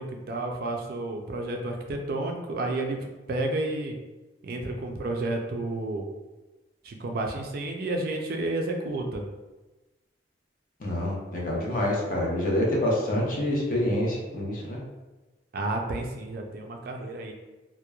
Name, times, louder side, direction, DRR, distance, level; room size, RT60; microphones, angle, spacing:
voice 1, 0.0-3.0 3.3-4.0 4.4-6.1 6.8-9.2 15.5-17.3, right 2 dB, 55° right, 2 dB, 0.3 m, -31 dB
voice 2, 10.8-14.8, left 1 dB, 50° left, -3 dB, 0.6 m, -27 dB
2.9 x 2.0 x 2.2 m, 1.1 s
head